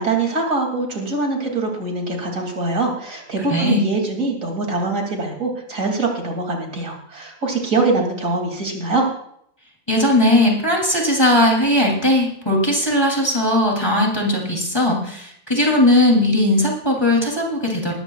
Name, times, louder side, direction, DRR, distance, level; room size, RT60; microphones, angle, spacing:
voice 1, 0.0-9.1, right 3 dB, 70° right, 1 dB, 3.0 m, -23 dB
voice 2, 3.5-3.8 9.9-17.9, left 1 dB, 15° left, -1 dB, 2.9 m, -18 dB
19.0 x 14.5 x 2.4 m, 0.70 s
omnidirectional pair, 1.4 m